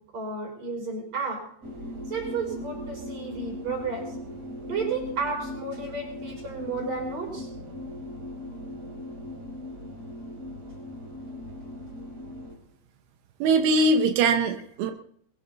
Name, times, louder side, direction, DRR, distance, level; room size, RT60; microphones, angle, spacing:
voice 1, 0.1-1.4 2.1-4.1 4.6-7.5 13.7-13.9, right 4 dB, 35° right, 1 dB, 6.4 m, -32 dB
sound 1, 1.6-12.5, left 1 dB, 55° right, 6.1 m, -39 dB
voice 2, 13.4-14.9, right 3 dB, 90° right, 6 dB, 3.7 m, -21 dB
22.5 x 14.0 x 4.1 m, 0.63 s
omnidirectional pair, 5.3 m